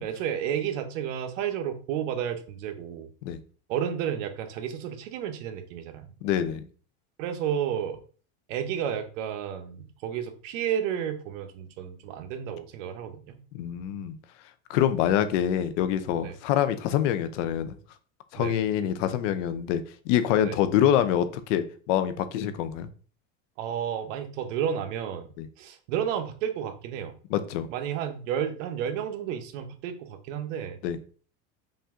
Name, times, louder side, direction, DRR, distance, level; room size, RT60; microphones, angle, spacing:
voice 1, 0.0-3.1 3.7-6.1 7.2-8.0 8.5-13.4 16.2-16.4 18.4-18.5 20.4-20.6 23.6-25.3 25.6-27.1 27.7-30.8, right 9 dB, 80° right, 7 dB, 0.9 m, -31 dB
voice 2, 6.2-6.6 13.5-14.2 14.7-17.7 18.3-22.9 25.4-25.5 27.3-27.7 30.8-31.0, left 10 dB, 70° left, 12 dB, 0.7 m, -25 dB
5.5 x 2.7 x 3.6 m, 0.40 s
cardioid pair, 170°, 37 cm